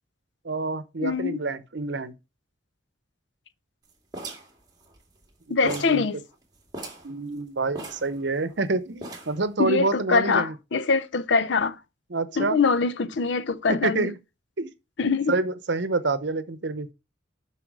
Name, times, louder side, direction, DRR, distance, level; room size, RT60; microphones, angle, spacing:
voice 1, 0.4-2.1 5.5-6.0 7.0-10.5 12.1-12.6 13.7-14.1 14.6-14.7 15.3-16.9, right 3 dB, 70° right, 0.9 m, -27 dB
voice 2, 1.0-1.4 5.5-6.2 9.6-11.8 12.4-14.1 15.0-15.3, left 4 dB, 70° left, 0.6 m, -23 dB
sound 1, 4.1-5.3 5.7-6.0 6.3-6.4 6.7-7.1 7.8-8.6 9.0-9.5, right 2 dB, 20° right, 2.0 m, -39 dB
7.7 x 5.9 x 4.7 m
head